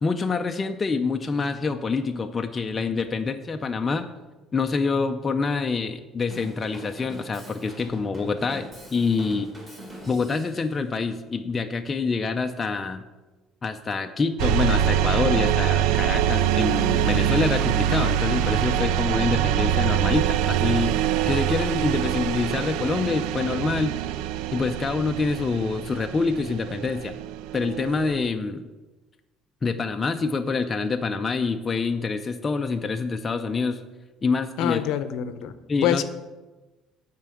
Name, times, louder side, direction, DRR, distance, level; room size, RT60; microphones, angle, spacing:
voice 1, 0.0-4.1 4.5-9.5 10.1-13.0 13.6-21.0 21.3-23.9 24.5-27.2 27.5-28.7 29.6-33.8 34.2-34.8 35.7-36.0, left 4 dB, 15° left, 5 dB, 0.4 m, -26 dB
Drum kit / Drum, 6.3-10.7, equal, 15° right, 2.0 m, -43 dB
sound 1, 14.4-28.3, right 11 dB, 85° right, 0.3 m, -24 dB
voice 2, 34.6-35.5 35.8-36.0, left 10 dB, 65° left, 12 dB, 0.6 m, -25 dB
9.1 x 4.5 x 7.6 m, 1.2 s
cardioid pair, 175°, 0 cm